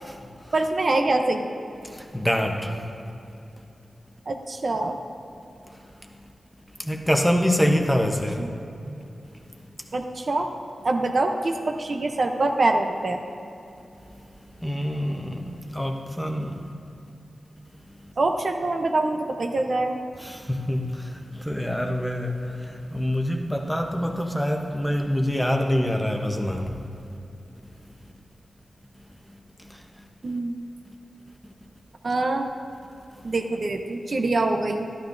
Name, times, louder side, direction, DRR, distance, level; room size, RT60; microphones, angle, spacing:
voice 1, 0.0-0.5 1.8-2.9 3.6-3.7 5.7-6.2 6.8-8.5 9.8-9.9 14.6-16.7 18.0-18.1 20.2-26.8 27.8-27.9 29.2-30.0 33.2-33.3, equal, 5° left, 2 dB, 0.8 m, -26 dB
voice 2, 0.5-1.5 4.3-5.0 8.4-8.5 9.9-10.5 10.8-13.2 18.2-20.0 30.2-30.5 32.0-32.5 33.2-34.9, right 2 dB, 50° right, 4 dB, 0.6 m, -24 dB
12.5 x 12.0 x 2.6 m, 2.8 s
wide cardioid pair, 125°, 0 cm